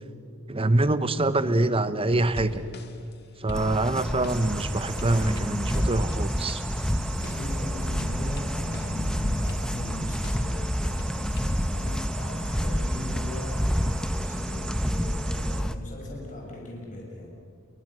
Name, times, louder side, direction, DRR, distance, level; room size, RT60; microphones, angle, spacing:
voice 1, 0.5-2.6 3.4-6.6, right 2 dB, 25° right, 13 dB, 1.0 m, -25 dB
sound 1, 2.1-3.1 3.5-7.6 8.0-9.1 9.5-10.6 11.0-11.6, left 1 dB, 55° left, 1.7 m, -41 dB
sound 2, 3.5-15.8, equal, 5° left, 0.9 m, -29 dB
sound 3, 4.3-15.6, right 11 dB, 60° right, 1.9 m, -43 dB
voice 2, 7.1-17.3, left 1 dB, 40° left, -2 dB, 6.0 m, -39 dB
28.5 x 23.5 x 6.3 m, 2.4 s
head